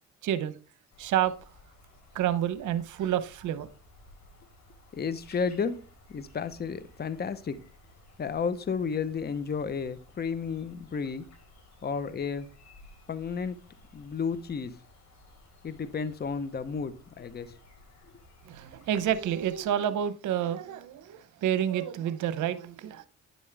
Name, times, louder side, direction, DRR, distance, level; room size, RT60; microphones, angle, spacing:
voice 1, 0.2-0.5 1.0-1.3 2.1-3.7 18.5-23.1, right 10 dB, 80° right, 0.8 m, -29 dB
sound 1, 0.9-19.7, left 1 dB, 65° left, 3.6 m, -56 dB
voice 2, 4.9-5.8 6.1-7.6 8.2-11.2 11.8-12.5 13.1-13.6 13.9-14.7 15.6-17.6, left 5 dB, 35° left, 0.8 m, -32 dB
9.9 x 7.2 x 3.4 m
cardioid pair, 90°, 30 cm